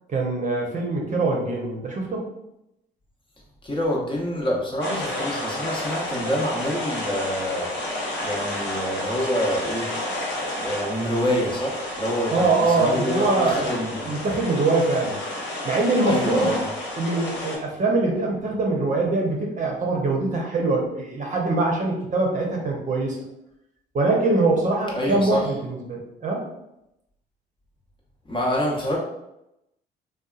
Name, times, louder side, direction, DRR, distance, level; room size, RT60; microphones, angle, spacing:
voice 1, 0.1-2.2 12.3-15.2 15.6-16.5 17.0-23.2 23.9-26.5, right 3 dB, 40° right, -1 dB, 0.7 m, -23 dB
voice 2, 3.6-7.7 8.2-9.9 10.6-14.2 16.0-16.7 24.9-25.4 28.3-29.0, equal, 25° left, -3 dB, 0.9 m, -26 dB
sound 1, 4.8-17.6, left 1 dB, 60° left, 0.9 m, -30 dB
2.6 x 2.3 x 2.4 m, 0.85 s
supercardioid pair, 65°, 20 cm